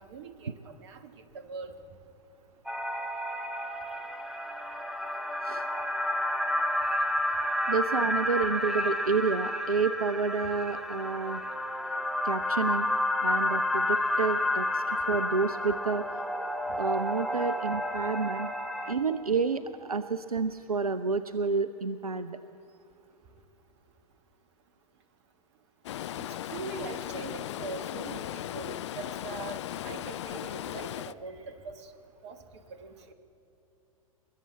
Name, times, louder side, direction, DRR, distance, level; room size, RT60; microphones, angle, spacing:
voice 1, 0.0-1.7 26.5-31.9 32.2-32.4 32.7-33.1, right 4 dB, 50° right, 9 dB, 1.4 m, -42 dB
sound 1, 2.7-18.9, left 1 dB, ahead, 0.7 m, -30 dB
voice 2, 7.7-11.4 12.2-12.9 13.2-16.0 16.8-18.5 18.9-22.4, right 4 dB, 85° right, 12 dB, 0.4 m, -29 dB
Stream, 25.8-31.1, left 12 dB, 50° left, 0.4 m, -37 dB
21.5 x 7.4 x 8.0 m, 3.0 s
figure-of-eight pair, 100°, 18 cm